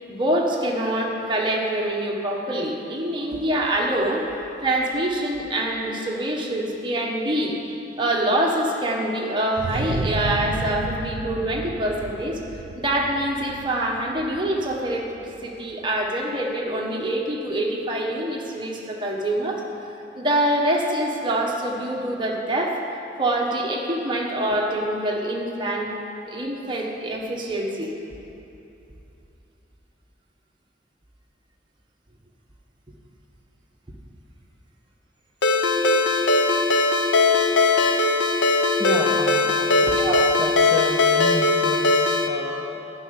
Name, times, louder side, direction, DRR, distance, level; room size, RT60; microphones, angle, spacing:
voice 1, 0.1-4.2 4.6-7.5 8.0-12.4 12.7-19.6 20.1-22.8 23.2-26.0 26.3-27.9 39.9-40.3, right 1 dB, 25° right, -1 dB, 1.3 m, -25 dB
sound 1, 9.6-15.1, right 2 dB, 75° right, 0.8 m, -32 dB
Ringtone, 35.4-42.3, left 3 dB, 75° left, 0.8 m, -20 dB
voice 2, 38.8-39.6 39.8-42.9, left 1 dB, ahead, -3 dB, 0.7 m, -31 dB
12.0 x 6.5 x 9.6 m, 2.9 s
head